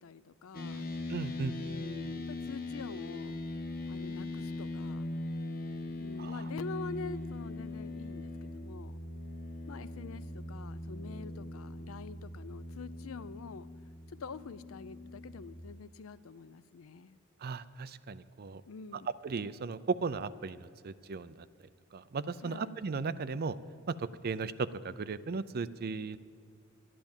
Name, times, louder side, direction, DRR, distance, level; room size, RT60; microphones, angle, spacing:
voice 1, 0.0-0.9 1.6-3.4 3.9-5.1 6.0-9.0 9.7-13.7 14.1-17.2 18.7-19.1 22.4-22.7, left 4 dB, 85° left, 16 dB, 0.5 m, -46 dB
sound 1, 0.5-15.6, left 2 dB, 45° left, 1.3 m, -40 dB
voice 2, 1.1-1.5 6.2-6.5 17.4-18.6 18.9-21.5 21.9-23.5 23.9-26.2, right 4 dB, 50° right, 14 dB, 0.5 m, -36 dB
12.0 x 10.0 x 7.2 m, 2.4 s
head